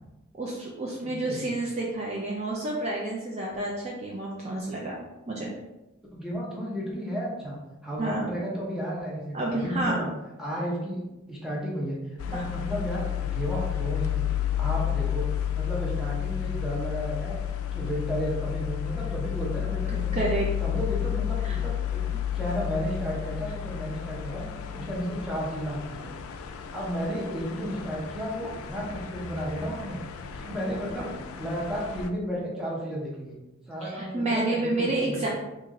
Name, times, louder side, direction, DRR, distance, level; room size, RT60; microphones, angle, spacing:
voice 1, 0.4-5.0 5.3-5.6 8.0-8.4 9.3-10.1 12.3-12.6 20.1-20.5 21.4-21.6 33.8-35.3, right 2 dB, 30° right, -3 dB, 0.4 m, -29 dB
voice 2, 1.0-1.4 6.1-10.1 10.4-11.0 11.3-12.0 12.3-14.2 14.6-15.3 15.5-17.4 17.7-20.2 20.6-22.0 22.3-26.1 26.7-33.4 33.7-35.3, equal, 5° right, -5 dB, 0.7 m, -33 dB
sound 1, 12.2-32.1, left 10 dB, 75° left, 0.3 m, -32 dB
2.9 x 2.5 x 3.7 m, 1.0 s
head